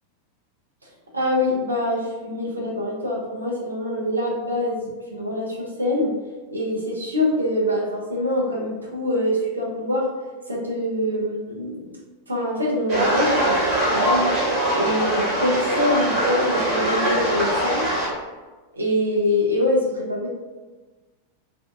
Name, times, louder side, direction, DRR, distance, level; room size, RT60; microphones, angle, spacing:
voice 1, 1.1-6.1 6.5-10.1 10.5-11.9 12.3-14.3 14.7-17.9 18.7-20.3, left 1 dB, 80° right, -3 dB, 0.6 m, -24 dB
sound 1, 12.9-18.1, right 1 dB, 35° right, 1.1 m, -22 dB
2.6 x 2.2 x 2.5 m, 1.3 s
figure-of-eight pair, 90°, 0 cm